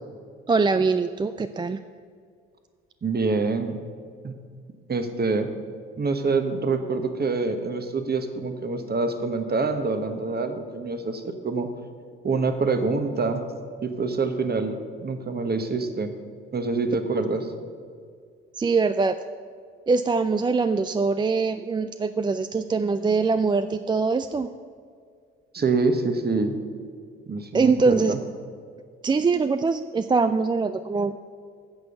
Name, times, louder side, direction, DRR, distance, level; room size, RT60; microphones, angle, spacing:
voice 1, 0.5-1.8 18.5-19.2 19.9-24.5 27.5-28.1 29.0-31.2, right 4 dB, 15° right, 10 dB, 0.3 m, -23 dB
voice 2, 3.0-3.8 4.2-4.4 4.9-5.5 6.0-11.7 12.2-13.4 13.8-16.1 16.5-17.5 25.5-26.6 27.3-28.2, right 3 dB, 35° right, 7 dB, 1.3 m, -26 dB
9.0 x 6.9 x 6.7 m, 2.1 s
hypercardioid pair, 55°, 29 cm